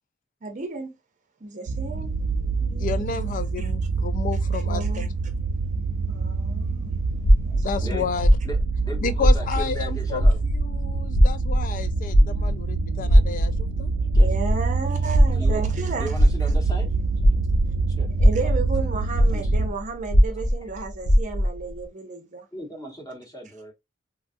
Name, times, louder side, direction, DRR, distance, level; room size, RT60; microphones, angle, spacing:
voice 1, 0.4-0.9 1.4-2.1 2.6-3.7 4.5-5.1 6.1-7.0 7.4-7.9 14.2-16.2 18.2-22.5, right 3 dB, 40° right, 0.6 m, -34 dB
sound 1, 1.7-19.7, right 4 dB, 90° right, 0.4 m, -26 dB
voice 2, 2.8-5.1 6.5-6.8 7.6-8.3 9.0-13.9, left 6 dB, 45° left, 0.3 m, -31 dB
sound 2, 7.2-9.9 10.1-17.7 18.1-21.6, equal, 85° left, 0.8 m, -19 dB
voice 3, 8.8-10.4 14.1-14.3 15.3-15.6 16.0-16.9 18.0-18.1 18.4-18.5 19.3-19.5 22.5-23.7, right 1 dB, 20° left, 1.0 m, -36 dB
3.3 x 2.3 x 2.4 m
head